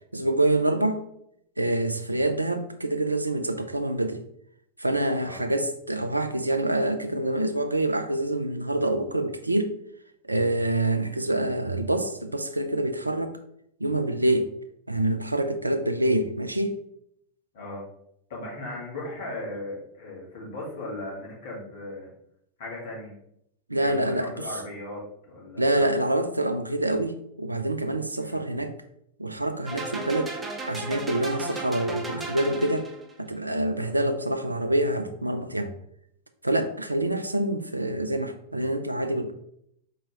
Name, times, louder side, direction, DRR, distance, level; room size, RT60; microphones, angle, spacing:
voice 1, 0.1-1.0 1.6-4.2 4.8-9.8 10.2-13.4 13.8-14.5 14.9-16.8 23.7-24.3 25.6-28.7 29.2-30.4 30.7-32.9 33.2-35.7 36.4-39.3, right 1 dB, 85° right, 8 dB, 0.4 m, -26 dB
voice 2, 17.5-17.8 18.3-22.1 22.6-23.1 23.8-25.9 28.2-28.5 33.8-34.0, left 2 dB, 55° left, -3 dB, 1.7 m, -37 dB
sound 1, 29.7-33.1, right 2 dB, 15° right, 0.7 m, -35 dB
4.4 x 3.3 x 3.2 m, 0.72 s
figure-of-eight pair, 90°, 0 cm